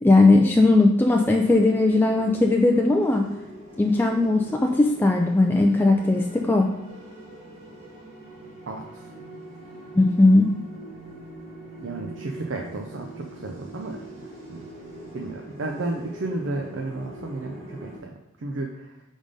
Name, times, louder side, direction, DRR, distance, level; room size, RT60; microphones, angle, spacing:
voice 1, 0.0-3.2 3.8-6.7 10.0-10.5, left 2 dB, 10° left, 2 dB, 0.3 m, -18 dB
sound 1, 1.2-18.0, right 1 dB, 35° right, 1.6 m, -43 dB
voice 2, 8.7-9.1 11.8-14.7 15.1-19.0, right 2 dB, 70° right, 1 dB, 0.6 m, -33 dB
5.2 x 3.6 x 5.2 m, 0.88 s
head